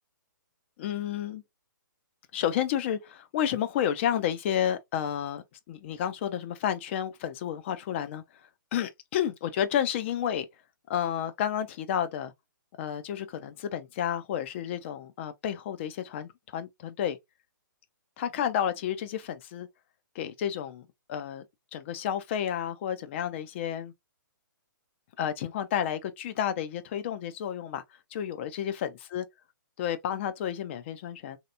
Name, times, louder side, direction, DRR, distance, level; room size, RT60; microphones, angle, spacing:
voice 1, 0.8-1.4 2.3-8.2 8.7-10.5 10.9-12.3 12.8-17.2 18.2-19.7 20.1-21.4 21.7-23.9 25.2-27.8 28.1-29.3 29.8-31.4, left 9 dB, 35° left, 0.5 m, -31 dB
3.2 x 2.8 x 2.6 m
figure-of-eight pair, 125°, 11 cm